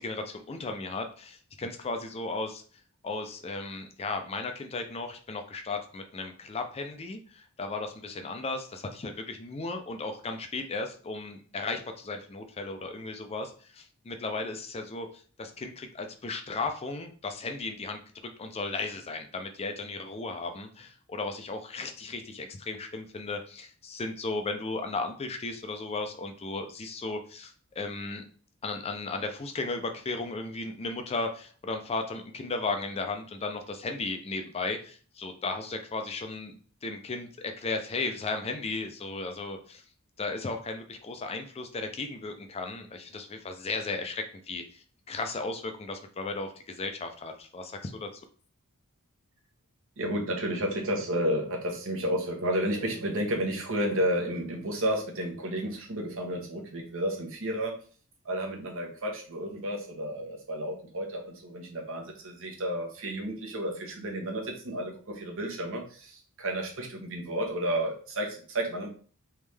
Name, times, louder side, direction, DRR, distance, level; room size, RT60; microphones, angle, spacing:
voice 1, 0.0-2.6 3.0-18.0 18.4-28.2 28.6-39.8 40.2-48.1, left 3 dB, 25° left, 6 dB, 0.4 m, -35 dB
voice 2, 50.0-57.7 58.2-68.9, equal, 60° right, 1 dB, 1.0 m, -31 dB
3.5 x 3.1 x 3.3 m, 0.42 s
head